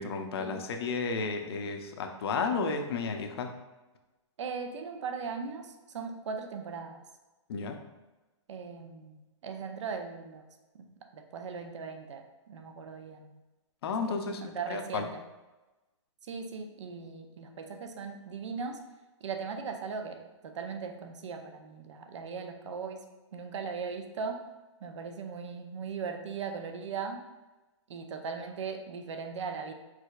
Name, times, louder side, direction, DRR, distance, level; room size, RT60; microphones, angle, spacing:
voice 1, 0.0-3.5 7.5-7.8 13.8-15.0, left 4 dB, 55° left, 5 dB, 0.6 m, -33 dB
voice 2, 4.4-7.0 8.5-10.4 10.7-10.8 11.1-13.4 14.1-15.2 16.3-18.8 19.2-23.0 23.3-24.4 24.8-27.2 27.9-29.7, right 5 dB, 70° right, 5 dB, 0.7 m, -38 dB
4.8 x 4.0 x 2.4 m, 1.1 s
hypercardioid pair, 145°, 16 cm